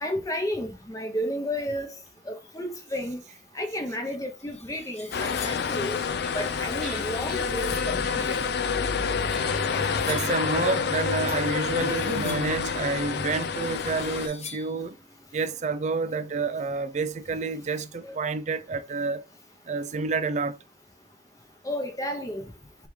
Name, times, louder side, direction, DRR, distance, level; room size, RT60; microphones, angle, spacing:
voice 1, 0.0-1.9 2.3-3.2 3.5-6.0 6.3-8.4 18.0-18.2 21.6-22.4, equal, 20° left, 0.8 m, -32 dB
sound 1, 3.9-4.0 4.4-5.8 6.6-8.0 9.0-10.5 11.3-12.6 13.4-14.8, left 6 dB, 40° left, 1.1 m, -45 dB
sound 2, 5.1-14.3, left 6 dB, 65° left, 0.5 m, -28 dB
sound 3, 6.1-16.4, equal, ahead, 1.3 m, -44 dB
voice 2, 10.1-15.0 15.3-19.2 19.7-20.6, right 4 dB, 40° right, 0.4 m, -29 dB
4.8 x 3.4 x 3.2 m
head